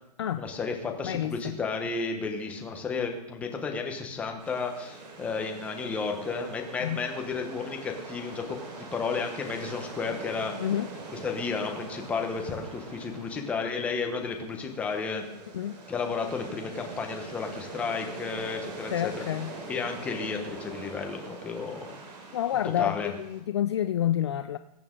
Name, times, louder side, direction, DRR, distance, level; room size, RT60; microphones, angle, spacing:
voice 1, 0.4-10.5 11.1-15.2 15.9-19.2 19.7-22.0 22.8-23.1, left 5 dB, 5° left, 0.9 m, -32 dB
voice 2, 1.0-1.6 6.8-7.0 10.6-10.9 15.5-15.7 18.9-19.5 22.3-24.6, left 11 dB, 40° left, 0.4 m, -28 dB
sound 1, 4.4-23.4, right 3 dB, 80° right, 4.5 m, -43 dB
21.0 x 8.6 x 3.7 m
hypercardioid pair, 175°, 21 cm